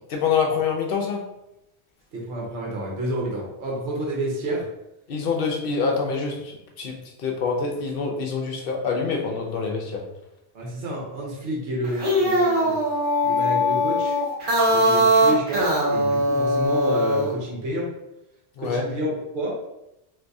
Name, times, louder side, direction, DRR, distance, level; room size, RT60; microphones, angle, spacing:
voice 1, 0.1-1.2 5.1-10.0 18.6-18.8, left 5 dB, 60° left, 1 dB, 0.8 m, -26 dB
voice 2, 2.1-4.6 10.5-12.8 13.2-14.2 14.7-17.9 18.6-19.6, right 1 dB, 75° right, -3 dB, 1.1 m, -29 dB
sound 1, 11.8-17.3, equal, 50° right, 0.9 m, -21 dB
3.5 x 2.6 x 2.6 m, 0.88 s
omnidirectional pair, 1.2 m